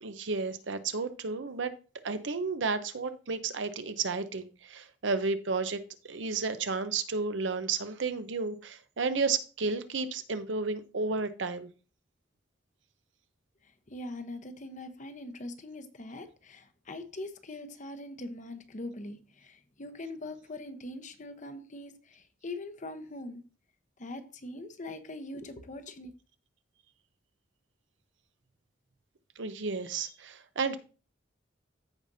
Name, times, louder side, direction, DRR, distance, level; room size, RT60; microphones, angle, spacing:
voice 1, 0.0-1.7 2.0-11.7 29.4-30.8, right 4 dB, 85° right, 0.8 m, -32 dB
voice 2, 13.9-23.4 24.0-26.1, left 2 dB, 45° left, 0.9 m, -42 dB
14.5 x 5.0 x 2.7 m
head